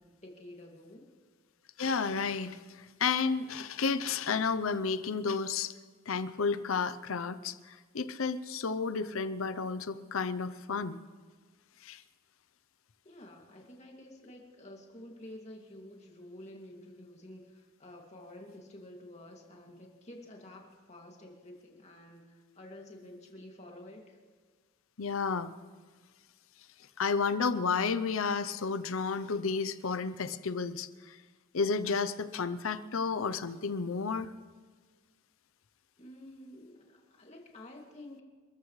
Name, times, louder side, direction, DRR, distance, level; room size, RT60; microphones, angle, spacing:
voice 1, 0.2-1.1 13.0-24.2 36.0-38.2, left 1 dB, 30° left, 0 dB, 2.4 m, -50 dB
voice 2, 1.8-5.7 6.1-11.0 11.8-12.0 25.0-25.5 27.0-31.2 31.5-34.3, left 5 dB, 80° left, 12 dB, 0.7 m, -32 dB
28.5 x 14.0 x 3.2 m, 1.5 s
head